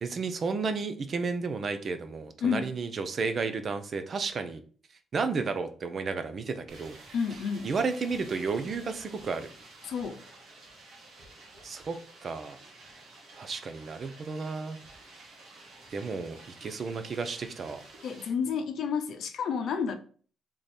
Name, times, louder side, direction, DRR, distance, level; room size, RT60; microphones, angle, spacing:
voice 1, 0.0-4.6 5.1-7.0 7.6-9.5 11.6-12.6 13.4-14.8 15.9-17.8, right 4 dB, 50° right, 0.7 m, -32 dB
voice 2, 2.4-2.7 7.1-7.7 9.9-10.2 18.0-20.0, left 6 dB, 70° left, 0.6 m, -30 dB
sound 1, 6.7-18.3, right 2 dB, 85° right, 1.5 m, -51 dB
3.7 x 3.3 x 4.2 m
cardioid pair, 90°, 0 cm